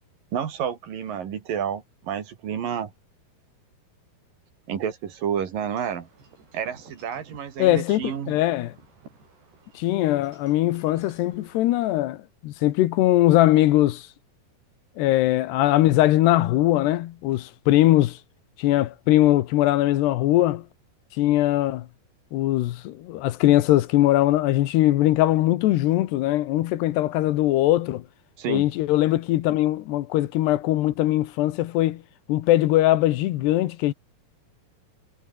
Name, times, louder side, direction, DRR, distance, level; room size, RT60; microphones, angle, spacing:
voice 1, 0.3-2.9 4.7-6.1 6.5-8.4 28.4-28.6, right 8 dB, 60° right, 3.9 m, -30 dB
Wind chime / Wind, 5.7-12.0, right 4 dB, 85° right, 10.5 m, -54 dB
voice 2, 7.6-8.8 9.8-14.1 15.0-18.2 18.6-20.7 21.1-21.9 22.3-28.0 28.5-32.0 32.3-33.9, left 15 dB, 85° left, 3.2 m, -21 dB
omnidirectional pair, 4.7 m